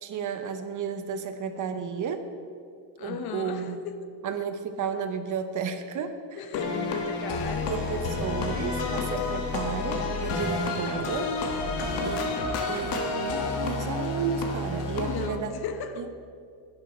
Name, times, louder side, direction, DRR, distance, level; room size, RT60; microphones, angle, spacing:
voice 1, 0.0-2.3 3.0-3.8 4.2-6.4 7.7-11.4 12.0-13.4 13.6-15.5 16.0-16.1, right 6 dB, 45° right, 8 dB, 0.8 m, -33 dB
voice 2, 3.0-3.9 6.4-7.8 15.0-16.1, left 6 dB, 60° left, 8 dB, 0.9 m, -35 dB
sound 1, 6.5-15.3, left 3 dB, 75° left, 1.5 m, -30 dB
11.5 x 10.0 x 4.3 m, 2.3 s
cardioid pair, 140°, 43 cm